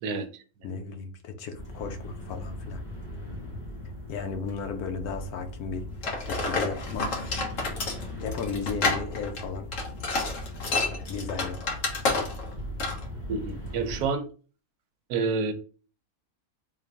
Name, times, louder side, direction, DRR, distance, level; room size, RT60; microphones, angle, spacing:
voice 1, 0.6-2.8 4.1-5.8 6.2-7.7 8.2-9.7 10.5-11.8, left 5 dB, 85° left, 6 dB, 1.2 m, -35 dB
sound 1, 1.5-14.1, left 1 dB, 20° left, 1.3 m, -39 dB
sound 2, 6.0-12.5 12.8-13.0, left 3 dB, 60° left, 1.3 m, -29 dB
voice 2, 13.3-14.2 15.1-15.5, right 4 dB, 85° right, 9 dB, 1.1 m, -28 dB
3.5 x 2.5 x 3.3 m, 0.38 s
omnidirectional pair, 1.6 m